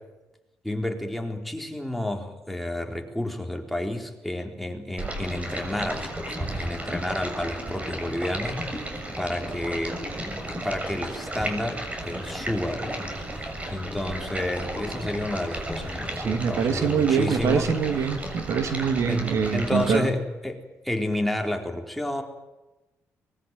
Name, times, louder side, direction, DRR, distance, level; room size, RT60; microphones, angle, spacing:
voice 1, 0.6-8.7 9.2-17.8 19.1-22.2, left 1 dB, ahead, 2 dB, 4.2 m, -31 dB
Stream, 5.0-20.0, right 1 dB, 25° right, 6.9 m, -34 dB
voice 2, 16.2-20.1, right 7 dB, 70° right, 7 dB, 2.7 m, -24 dB
24.0 x 21.0 x 9.5 m, 1.0 s
cardioid pair, 70°, 5 cm